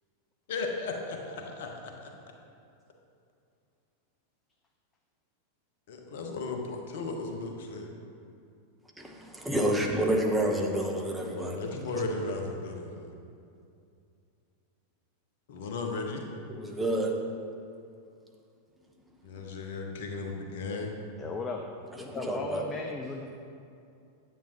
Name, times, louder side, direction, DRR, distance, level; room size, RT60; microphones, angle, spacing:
voice 1, 0.5-1.7 2.0-2.1 5.9-7.9 11.3-13.1 15.5-16.2 19.2-20.9, left 3 dB, 55° left, 3 dB, 1.0 m, -35 dB
voice 2, 9.0-11.6 16.5-17.1 22.1-22.6, right 1 dB, 5° right, -1 dB, 1.0 m, -29 dB
voice 3, 21.2-21.6 22.0-23.3, left 3 dB, 20° left, 2 dB, 0.6 m, -36 dB
9.2 x 8.6 x 3.0 m, 2.5 s
figure-of-eight pair, 90°, 0 cm